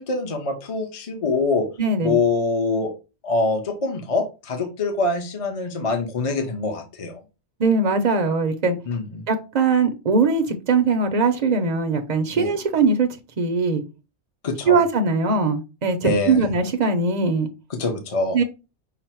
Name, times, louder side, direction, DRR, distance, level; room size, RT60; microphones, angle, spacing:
voice 1, 0.0-1.7 2.0-2.9 3.2-7.2 8.9-9.2 12.4-12.5 14.4-14.8 16.0-16.4 17.7-18.4, left 3 dB, 35° left, 0.7 m, -24 dB
voice 2, 1.8-2.2 7.6-8.8 9.3-13.1 13.4-13.8 14.7-17.5 18.3-18.4, right 4 dB, 50° right, 0.6 m, -20 dB
5.7 x 2.0 x 4.3 m
omnidirectional pair, 1.2 m